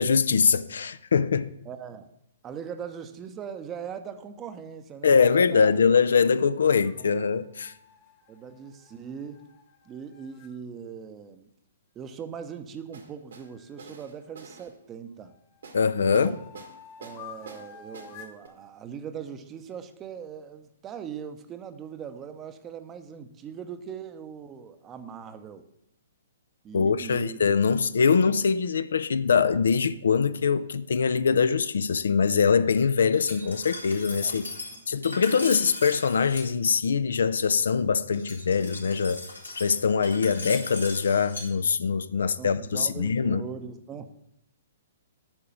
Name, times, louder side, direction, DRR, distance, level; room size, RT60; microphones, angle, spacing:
voice 1, 0.0-1.5 5.0-7.7 15.7-16.3 26.7-34.5 34.9-39.2 39.6-43.5, left 6 dB, 65° left, 0.4 m, -23 dB
voice 2, 1.7-2.1 2.4-5.7 7.0-7.1 8.3-9.5 9.8-11.5 11.9-15.4 15.9-16.4 17.0-25.7 26.6-27.4 34.2-34.5 34.9-35.5 42.1-44.2, right 7 dB, 20° right, 0.7 m, -40 dB
sound 1, 6.7-10.5 13.5-14.7 15.2-18.4, left 7 dB, 40° left, 1.3 m, -50 dB
sound 2, 12.9-13.5 13.8-14.7 15.6-15.8 16.1-16.7 17.0-17.7 17.9-18.1 18.4-18.5, right 5 dB, 70° right, 1.6 m, -46 dB
Glass, 33.1-36.5 38.1-41.5, left 2 dB, 90° left, 2.4 m, -38 dB
8.8 x 4.8 x 6.9 m
figure-of-eight pair, 120°, 0 cm